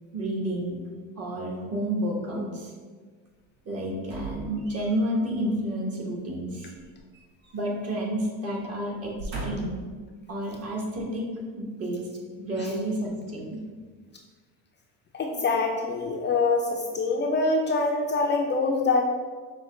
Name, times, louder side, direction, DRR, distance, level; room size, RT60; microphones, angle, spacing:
voice 1, 0.1-0.8 1.2-2.7 3.6-6.7 7.5-9.8 10.3-12.1 12.4-13.6, right 1 dB, 40° right, -2 dB, 1.2 m, -30 dB
sound 1, 4.0-5.2 6.7-7.9 8.2-8.4 9.0-9.9 10.6-10.7, right 2 dB, 80° right, 1.3 m, -38 dB
voice 2, 15.1-19.0, left 3 dB, 30° left, 1 dB, 0.4 m, -25 dB
5.9 x 2.3 x 3.7 m, 1.5 s
supercardioid pair, 95°, 37 cm